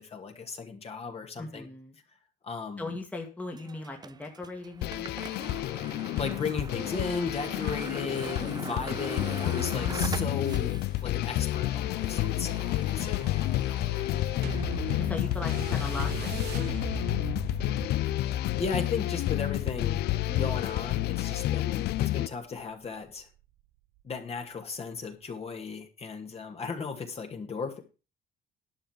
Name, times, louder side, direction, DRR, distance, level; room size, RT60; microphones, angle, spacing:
voice 1, 0.0-1.7 2.4-2.9 6.2-13.3 18.2-20.0 20.3-23.3 24.0-27.8, left 5 dB, 35° left, 4 dB, 2.4 m, -36 dB
voice 2, 1.4-2.0 2.8-5.6 8.5-8.9 15.0-17.0, left 2 dB, 10° left, 2 dB, 1.9 m, -40 dB
sound 1, 3.5-20.6, right 5 dB, 25° right, 0.5 m, -43 dB
sound 2, 4.8-22.3, left 15 dB, 75° left, 0.5 m, -30 dB
sound 3, 14.4-23.2 24.0-24.1, right 14 dB, 75° right, 0.6 m, -41 dB
11.5 x 5.5 x 7.4 m, 0.33 s
cardioid pair, 110°, 17 cm